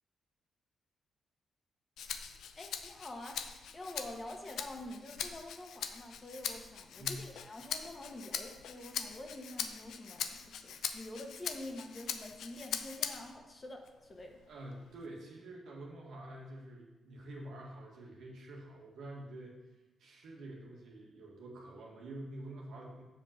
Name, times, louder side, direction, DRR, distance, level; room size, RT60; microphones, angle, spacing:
Rattle (instrument), 2.0-13.4 13.9-15.1, left 7 dB, 80° left, 0.5 m, -42 dB
voice 1, 2.6-14.4, left 1 dB, 35° left, 2 dB, 1.5 m, -47 dB
voice 2, 14.5-19.5 20.0-23.0, right 1 dB, 85° right, -2 dB, 1.8 m, -47 dB
7.0 x 5.2 x 6.5 m, 1.1 s
cardioid pair, 65°, 0 cm